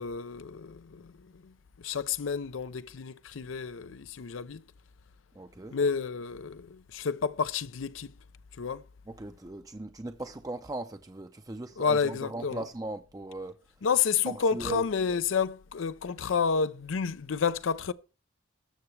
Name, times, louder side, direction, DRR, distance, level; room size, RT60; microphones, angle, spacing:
voice 1, 0.0-4.6 5.7-8.1 8.5-8.8 11.8-12.6 13.8-17.9, left 6 dB, 90° left, 0.5 m, -30 dB
voice 2, 5.4-5.8 9.1-13.6 14.3-14.8, right 2 dB, 20° right, 0.5 m, -38 dB
20.0 x 6.9 x 3.2 m
head